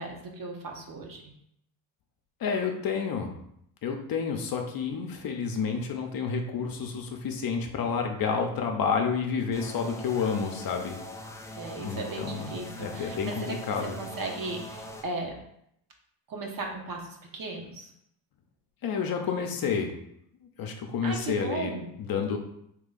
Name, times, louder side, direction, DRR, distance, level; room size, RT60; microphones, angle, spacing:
voice 1, 0.0-1.3 11.6-13.6 14.0-15.3 16.3-17.9 21.0-21.9, right 3 dB, 45° right, 1 dB, 1.0 m, -36 dB
voice 2, 2.4-3.3 3.8-11.0 11.8-14.0 18.8-19.9 20.4-22.4, left 6 dB, 45° left, 3 dB, 0.7 m, -30 dB
sound 1, 9.5-15.0, equal, 5° left, 0.4 m, -42 dB
3.2 x 2.9 x 3.8 m, 0.74 s
supercardioid pair, 65°, 48 cm